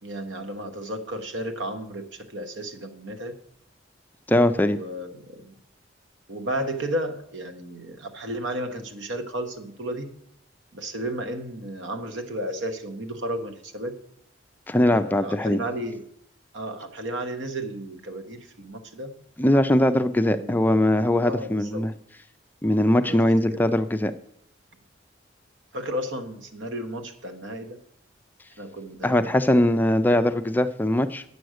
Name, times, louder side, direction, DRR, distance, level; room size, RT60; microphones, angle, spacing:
voice 1, 0.0-3.3 4.6-5.5 6.3-10.1 10.7-14.0 14.9-16.0 16.5-19.1 20.3-20.6 21.2-21.8 23.0-23.2 25.7-27.8 28.6-29.3, right 1 dB, 70° right, 6 dB, 1.1 m, -33 dB
voice 2, 4.3-4.8 14.7-15.6 19.4-21.9 22.6-24.1 29.0-31.2, left 1 dB, 10° left, 9 dB, 0.3 m, -21 dB
9.0 x 6.9 x 6.4 m, 0.70 s
head